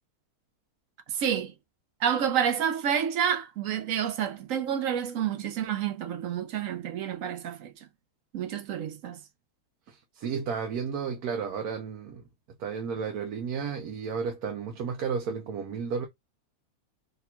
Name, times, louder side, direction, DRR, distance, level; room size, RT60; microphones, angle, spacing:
voice 1, 1.1-1.5 2.0-7.7 8.3-9.2, right 8 dB, 70° right, 1.0 m, -29 dB
voice 2, 9.9-12.2 12.6-16.1, right 6 dB, 90° right, 1.3 m, -32 dB
3.5 x 2.3 x 4.2 m
omnidirectional pair, 1.6 m